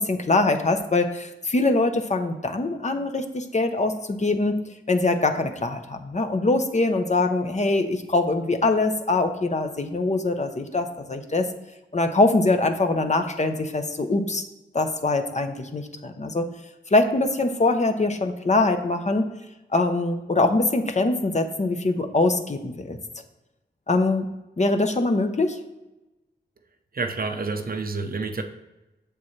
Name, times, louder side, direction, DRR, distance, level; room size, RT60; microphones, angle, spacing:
voice 1, 0.0-4.6 4.9-11.5 11.9-14.4 14.7-16.5 16.9-19.2 19.7-23.0 23.9-24.3 24.6-25.6, left 2 dB, 35° left, 6 dB, 0.7 m, -23 dB
voice 2, 26.9-28.4, right 3 dB, 50° right, 6 dB, 0.7 m, -28 dB
7.3 x 6.8 x 3.2 m, 1.0 s
wide cardioid pair, 70°, 19 cm